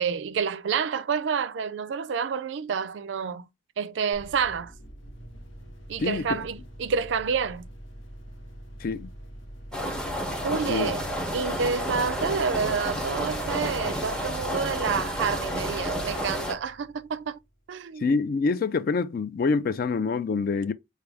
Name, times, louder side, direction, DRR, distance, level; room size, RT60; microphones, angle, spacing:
voice 1, 0.0-3.5 3.8-4.7 5.9-7.6 10.4-11.0 11.3-17.4 17.7-18.1, right 6 dB, 70° right, 0.4 m, -28 dB
sound 1, 4.1-17.6, equal, 80° left, 0.8 m, -44 dB
voice 2, 6.0-6.4 8.8-9.1 10.5-10.9 18.0-20.7, left 4 dB, 50° left, 0.3 m, -26 dB
sound 2, 9.7-16.5, equal, 5° left, 0.6 m, -31 dB
4.6 x 2.2 x 3.3 m
head